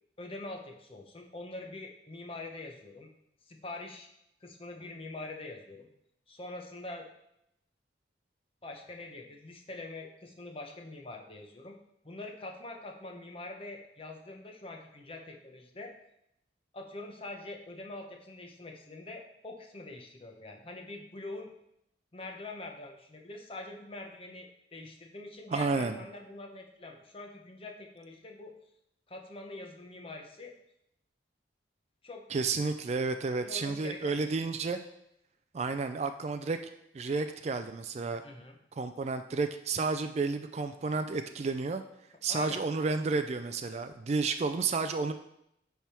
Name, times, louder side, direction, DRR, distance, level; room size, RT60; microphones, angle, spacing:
voice 1, 0.2-3.1 3.5-4.1 4.4-5.9 6.3-7.1 8.6-11.7 12.0-15.9 16.7-21.5 22.1-28.5 29.1-30.5 32.0-32.2 33.4-34.5 38.2-38.5 42.3-42.6, left 2 dB, 30° left, 2 dB, 0.9 m, -44 dB
voice 2, 25.5-26.0 32.3-34.8 35.5-36.6 36.9-38.2 38.8-41.8 42.2-45.1, right 4 dB, 35° right, 8 dB, 0.3 m, -31 dB
10.5 x 3.5 x 4.4 m, 0.79 s
head